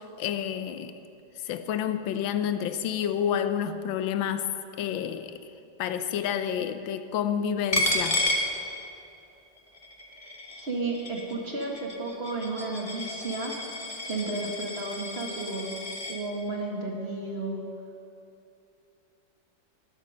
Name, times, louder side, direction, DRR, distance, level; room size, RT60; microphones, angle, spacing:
voice 1, 0.2-0.9 1.5-4.5 4.8-5.4 5.8-8.2, left 9 dB, 85° left, 1.4 m, -29 dB
Coin (dropping), 7.7-9.2 9.6-16.2, left 1 dB, 25° left, 1.0 m, -32 dB
voice 2, 10.5-13.5 14.1-15.8 16.1-17.6, right 2 dB, 35° right, 1.7 m, -33 dB
12.5 x 11.5 x 6.4 m
omnidirectional pair, 2.1 m